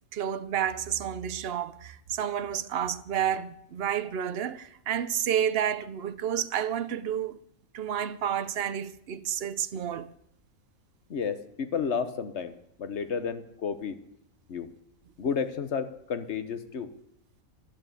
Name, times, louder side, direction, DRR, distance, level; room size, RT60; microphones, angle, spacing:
voice 1, 0.1-7.4 7.7-10.1, right 9 dB, 55° right, 0.8 m, -30 dB
voice 2, 11.1-14.0 14.5-14.7 15.2-16.9, left 6 dB, 55° left, 1.2 m, -32 dB
11.5 x 10.5 x 8.3 m
omnidirectional pair, 1.5 m